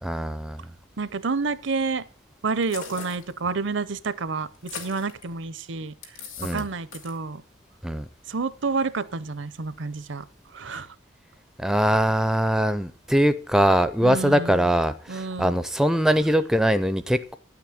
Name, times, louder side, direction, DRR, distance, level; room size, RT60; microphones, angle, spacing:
voice 1, 0.0-0.6 6.4-6.6 7.8-8.1 11.6-17.4, equal, ahead, 12 dB, 0.4 m, -22 dB
voice 2, 1.0-2.1 2.4-6.2 6.5-7.4 8.3-10.2 10.5-10.9 14.0-14.7 15.1-15.6, right 4 dB, 65° right, 16 dB, 0.6 m, -29 dB
sound 1, 2.6-3.3 4.5-5.2 6.0-6.7 6.9-7.2, left 5 dB, 90° left, 2.6 m, -39 dB
9.9 x 6.0 x 8.5 m, 0.43 s
head